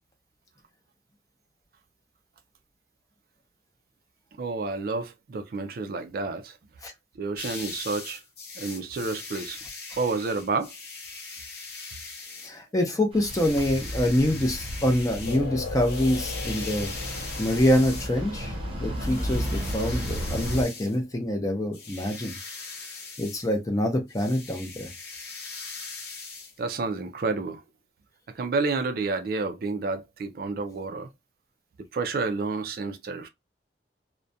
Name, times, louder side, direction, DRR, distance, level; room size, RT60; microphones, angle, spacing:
voice 1, 4.4-6.6 7.2-8.2 8.6-9.6 10.0-10.7 26.6-27.6 28.3-31.1 31.9-33.3, right 3 dB, 55° right, 0.3 m, -30 dB
sound 1, 7.4-12.6 13.2-18.2 19.0-21.0 21.7-23.5 24.1-26.5, left 4 dB, 60° left, 0.8 m, -40 dB
voice 2, 12.4-16.9 17.4-22.4 23.2-24.9, left 1 dB, 20° left, 0.5 m, -25 dB
sound 2, 13.1-20.6, equal, 30° right, 0.7 m, -33 dB
sound 3, 15.3-22.3, left 5 dB, 80° left, 0.4 m, -42 dB
2.3 x 2.1 x 2.6 m
head